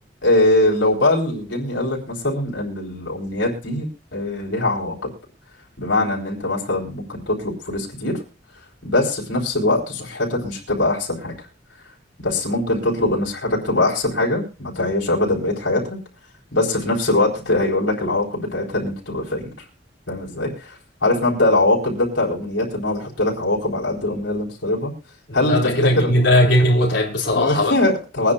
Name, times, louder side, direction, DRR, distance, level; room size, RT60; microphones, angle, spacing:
voice 1, 0.2-5.1 5.8-8.2 8.8-11.4 12.2-15.8 16.5-19.5 20.1-20.8 21.0-24.9 25.3-25.7 26.0-26.2 27.2-28.3, left 2 dB, 80° left, 4.2 m, -22 dB
voice 2, 25.5-27.7, left 1 dB, 60° left, 3.9 m, -18 dB
23.5 x 9.8 x 2.5 m
head